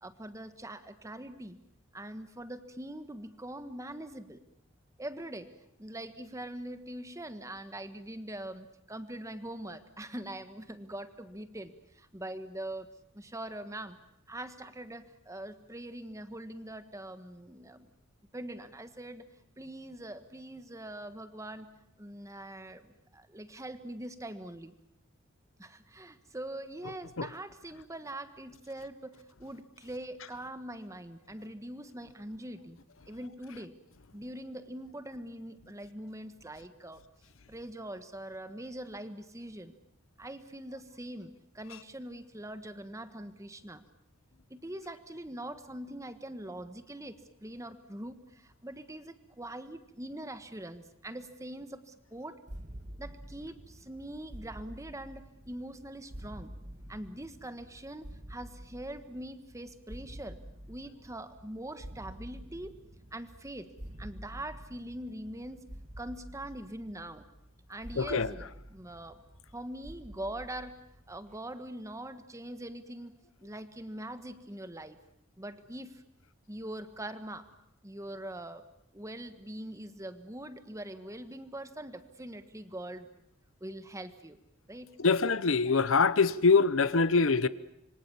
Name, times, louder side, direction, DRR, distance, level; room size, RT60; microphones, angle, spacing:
voice 1, 0.0-1.6 1.9-4.4 5.0-5.5 5.8-12.9 13.1-14.0 14.3-17.9 18.3-19.2 19.6-21.7 22.0-24.7 25.6-32.8 33.1-33.7 34.1-37.0 37.5-39.8 40.2-43.8 44.5-52.4 53.0-56.5 56.9-60.4 60.7-62.8 63.1-63.7 64.0-65.6 66.0-67.3 67.7-69.2 69.5-70.8 71.1-73.1 73.4-75.0 75.4-76.0 76.5-77.5 77.8-78.6 78.9-83.1 83.6-84.4 84.7-84.9 85.6-85.7, right 1 dB, 15° right, 1.4 m, -43 dB
sound 1, 52.5-71.4, equal, 40° right, 1.6 m, -49 dB
voice 2, 68.0-68.3 85.0-87.5, left 4 dB, 85° left, 0.9 m, -24 dB
27.0 x 24.0 x 7.2 m
head